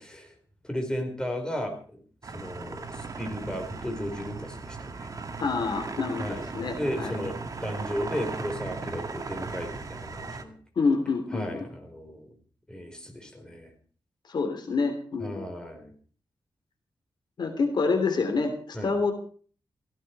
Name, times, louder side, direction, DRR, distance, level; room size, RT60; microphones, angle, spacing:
voice 1, 0.6-5.1 6.2-10.5 11.3-12.3 12.7-13.7 15.2-15.9 18.7-19.0, equal, 10° left, 3 dB, 4.7 m, -35 dB
sound 1, 2.2-10.4, right 4 dB, 40° right, 1.9 m, -37 dB
voice 2, 5.4-7.2 10.7-11.7 14.3-15.5 17.4-19.1, left 4 dB, 60° left, 5 dB, 3.1 m, -27 dB
16.5 x 16.0 x 4.8 m, 0.43 s
wide cardioid pair, 115°, 9 cm